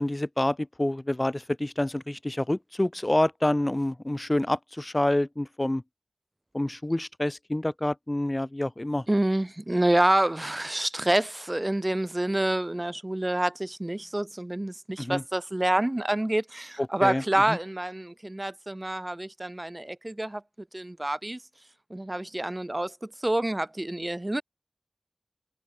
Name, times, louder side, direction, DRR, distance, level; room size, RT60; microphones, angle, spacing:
voice 1, 0.0-5.8 6.5-9.0 15.0-15.2 17.0-17.2 17.5-17.6, left 1 dB, 30° left, 1.2 m, -27 dB
voice 2, 9.1-20.4 20.7-21.4 21.9-24.4, right 1 dB, 30° right, 4.2 m, -27 dB
wide cardioid pair, 45°, 0 cm